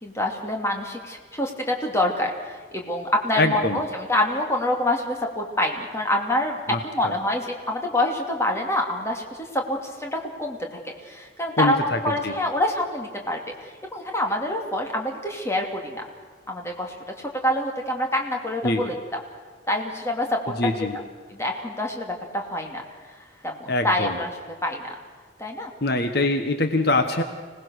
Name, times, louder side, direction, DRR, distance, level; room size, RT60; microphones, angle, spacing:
voice 1, 0.0-9.2 9.5-10.6 11.1-16.0 16.5-19.2 19.7-20.5 21.3-22.8 23.4-24.3 24.6-24.9 25.4-25.7, left 1 dB, 15° left, 2 dB, 2.7 m, -26 dB
voice 2, 3.4-3.8 6.7-6.8 7.0-7.1 11.5-12.3 18.6-18.8 20.6-21.0 23.7-24.2 25.8-27.2, left 2 dB, 60° left, 7 dB, 1.4 m, -23 dB
26.0 x 19.0 x 6.6 m, 1.5 s
head